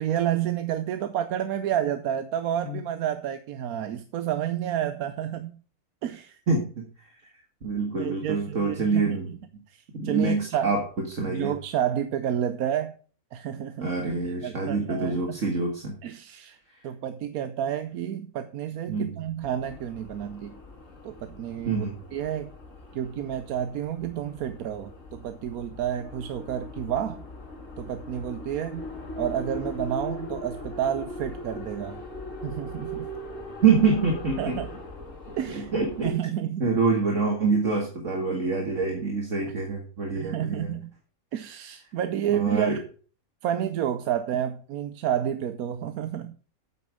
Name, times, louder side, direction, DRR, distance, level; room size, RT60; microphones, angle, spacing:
voice 1, 0.0-5.6 6.0-6.4 8.0-9.2 9.7-10.7 11.3-12.9 13.3-13.9 14.4-15.4 16.0-16.6 16.8-20.6 21.0-21.9 22.1-22.5 22.9-27.2 27.8-28.9 29.2-32.0 32.4-33.1 34.4-34.7 35.4-35.7 36.0-36.6 40.1-40.9 41.3-42.7 43.4-46.3, right 10 dB, 80° right, 10 dB, 1.2 m, -30 dB
voice 2, 6.5-6.9 7.6-9.3 10.0-10.8 11.1-11.5 13.8-15.9 18.9-19.1 21.7-21.9 33.6-34.6 35.5-36.1 36.6-40.7 42.3-42.8, right 4 dB, 60° right, 1 dB, 2.1 m, -25 dB
sound 1, 19.4-36.1, left 1 dB, 60° left, 2.5 m, -40 dB
9.0 x 8.6 x 5.0 m, 0.40 s
omnidirectional pair, 1.5 m